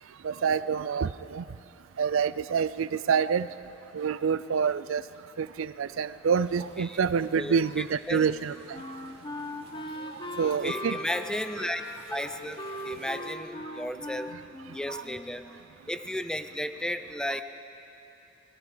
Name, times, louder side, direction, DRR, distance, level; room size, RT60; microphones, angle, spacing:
voice 1, 0.2-1.4 2.0-3.5 3.9-5.0 5.4-8.5 10.4-11.0 14.9-15.0, right 6 dB, 75° right, 15 dB, 0.4 m, -27 dB
sound 1, 6.3-13.4, right 2 dB, 30° right, 3.2 m, -53 dB
voice 2, 7.4-8.3 10.4-11.8 12.1-14.3 14.7-15.4 15.9-17.4, left 1 dB, 5° left, 9 dB, 0.7 m, -34 dB
Wind instrument woodwind instrument, 8.3-15.6, left 1 dB, 25° left, 1.1 m, -40 dB
29.0 x 21.0 x 5.1 m, 2.9 s
head